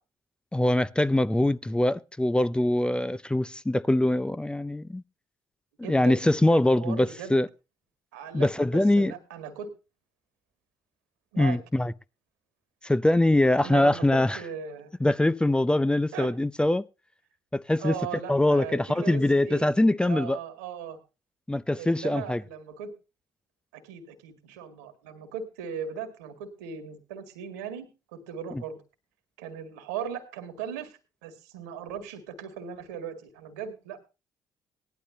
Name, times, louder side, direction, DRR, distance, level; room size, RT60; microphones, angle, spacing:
voice 1, 0.5-5.0 5.9-7.5 8.3-9.1 11.4-11.9 12.8-14.4 15.0-16.8 17.5-17.9 18.3-20.4 21.5-22.4 28.5-28.6, left 1 dB, 10° left, 0.6 m, -23 dB
voice 2, 5.8-6.2 6.5-7.4 8.1-9.7 11.3-11.6 13.6-14.9 16.1-16.3 17.8-19.7 20.0-21.0 21.7-22.9 23.7-27.9 28.1-28.8 29.4-34.1, right 7 dB, 85° right, 2.0 m, -38 dB
18.5 x 11.5 x 2.7 m
hypercardioid pair, 45°, 9 cm